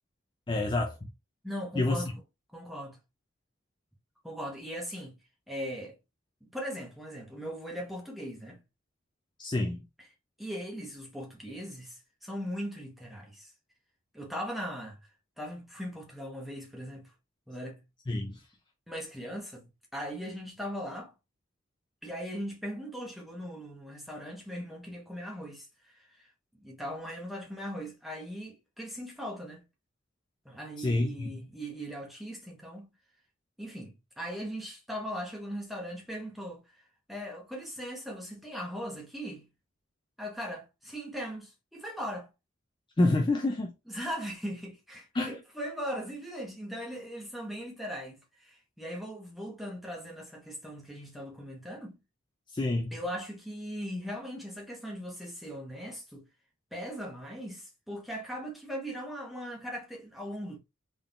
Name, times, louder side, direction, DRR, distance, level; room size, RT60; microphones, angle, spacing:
voice 1, 0.5-1.1 1.7-2.0 9.4-9.9 18.1-18.4 30.8-31.3 43.0-43.7 45.1-45.4 52.5-52.9, left 2 dB, 20° left, 0.4 m, -28 dB
voice 2, 1.4-2.1 2.5-3.0 4.2-5.2 5.5-5.9 6.4-8.6 10.4-13.5 14.1-15.0 15.4-17.1 17.5-17.8 18.9-21.1 22.0-26.3 26.6-29.7 30.4-32.9 33.6-39.5 40.2-42.3 43.9-52.0 52.9-56.3 56.7-60.6, equal, ahead, 1.1 m, -39 dB
3.7 x 3.7 x 2.4 m
head